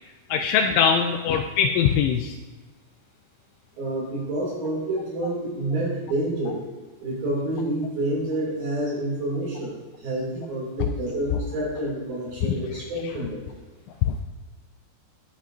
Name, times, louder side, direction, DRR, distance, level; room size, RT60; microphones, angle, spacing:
voice 1, 0.3-2.3 12.4-12.5 14.1-14.2, left 7 dB, 85° left, 4 dB, 3.0 m, -22 dB
voice 2, 3.8-6.6 7.0-13.5, right 1 dB, 55° right, -6 dB, 3.9 m, -28 dB
20.5 x 7.1 x 2.5 m, 1.3 s
omnidirectional pair, 5.6 m